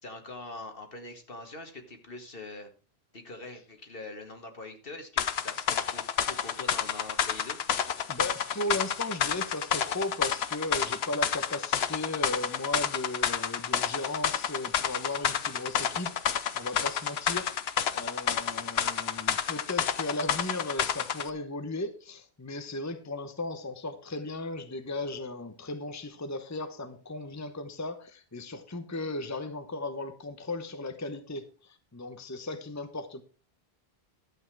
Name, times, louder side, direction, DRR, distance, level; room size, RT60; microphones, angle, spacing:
voice 1, 0.0-2.7 3.1-7.6, left 2 dB, 60° left, 2.0 m, -43 dB
sound 1, 5.2-21.3, left 8 dB, 85° left, 1.0 m, -30 dB
voice 2, 8.1-17.5 17.9-33.2, left 2 dB, 15° left, 0.9 m, -36 dB
12.0 x 8.3 x 4.7 m
omnidirectional pair, 1.0 m